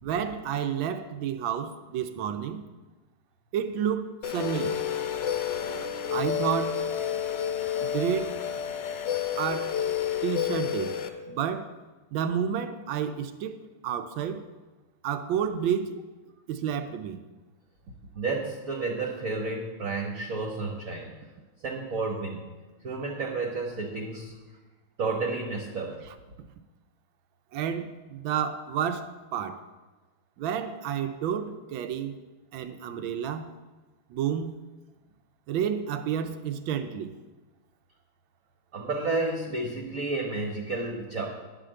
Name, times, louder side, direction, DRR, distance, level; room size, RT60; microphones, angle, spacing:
voice 1, 0.0-2.6 3.5-4.8 6.1-6.8 7.8-8.4 9.4-9.8 10.2-11.7 12.1-14.5 15.0-16.0 16.5-17.2 27.5-29.6 30.4-32.1 32.5-33.6 34.1-34.6 35.5-37.2, right 8 dB, 75° right, 1.4 m, -30 dB
sound 1, 4.2-11.1, left 9 dB, 65° left, 1.4 m, -30 dB
voice 2, 18.1-21.1 21.6-22.5 22.8-24.3 25.0-26.0 38.7-41.3, right 3 dB, 50° right, 1.3 m, -31 dB
10.5 x 5.0 x 7.6 m
omnidirectional pair, 2.3 m